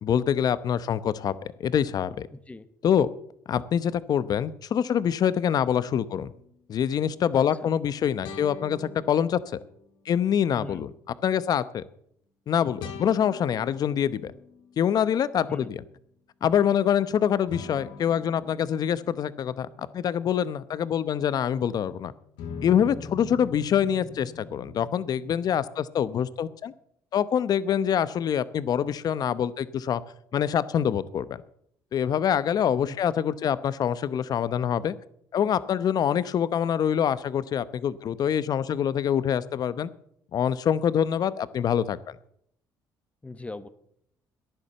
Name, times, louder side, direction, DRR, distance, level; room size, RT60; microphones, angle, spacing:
voice 1, 0.0-2.3 2.8-3.1 3.5-6.3 6.7-9.6 10.1-10.9 11.2-11.8 12.5-14.3 14.8-15.8 16.4-22.1 22.6-26.7 27.1-30.0 30.3-31.4 31.9-35.0 35.3-39.9 40.3-42.2, left 9 dB, 50° left, 16 dB, 0.8 m, -25 dB
voice 2, 2.3-2.7 7.3-7.4 10.6-10.8 15.5-15.8 32.8-33.0 43.2-43.7, left 2 dB, 15° left, 13 dB, 1.1 m, -39 dB
sound 1, 6.3-6.4 8.2-9.9 12.8-15.2 17.5-21.8 22.4-25.6, left 5 dB, 80° left, 1.8 m, -43 dB
14.5 x 10.5 x 6.8 m, 0.69 s
cardioid pair, 90°, 8 cm